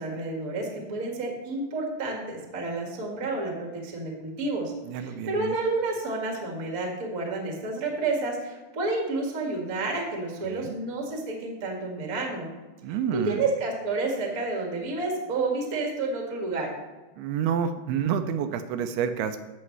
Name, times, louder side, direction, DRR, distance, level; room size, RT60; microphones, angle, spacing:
voice 1, 0.0-12.5 13.1-16.7, right 3 dB, 40° right, 0 dB, 1.2 m, -30 dB
voice 2, 4.9-5.6 10.4-10.8 12.8-13.4 17.2-19.4, right 8 dB, 85° right, 8 dB, 2.5 m, -29 dB
15.5 x 6.3 x 3.2 m, 1.2 s
omnidirectional pair, 4.6 m